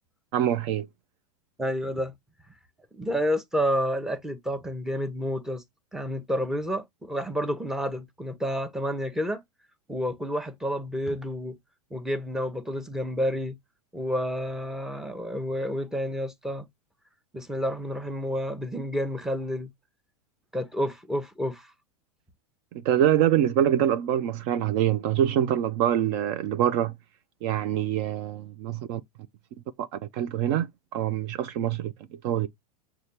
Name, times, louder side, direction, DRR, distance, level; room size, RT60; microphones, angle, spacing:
voice 1, 0.3-0.9 22.8-26.9 27.4-29.0 29.8-31.9 32.2-32.5, right 11 dB, 45° right, 0.5 m, -25 dB
voice 2, 1.6-2.1 2.9-5.6 5.9-9.4 9.9-11.6 11.9-13.6 13.9-16.7 17.3-19.7 20.5-21.7, equal, ahead, 0.7 m, -29 dB
6.4 x 2.3 x 2.8 m
hypercardioid pair, 100°, 20 cm